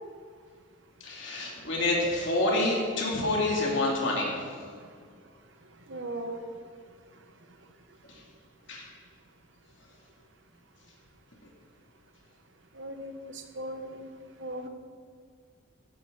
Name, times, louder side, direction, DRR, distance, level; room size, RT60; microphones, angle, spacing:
voice 1, 1.0-4.4 8.7-8.8, left 2 dB, 60° left, -3 dB, 3.1 m, -27 dB
voice 2, 5.9-6.4 12.7-14.1 14.4-14.7, right 1 dB, 60° right, 6 dB, 1.2 m, -38 dB
16.5 x 11.0 x 4.1 m, 2.1 s
head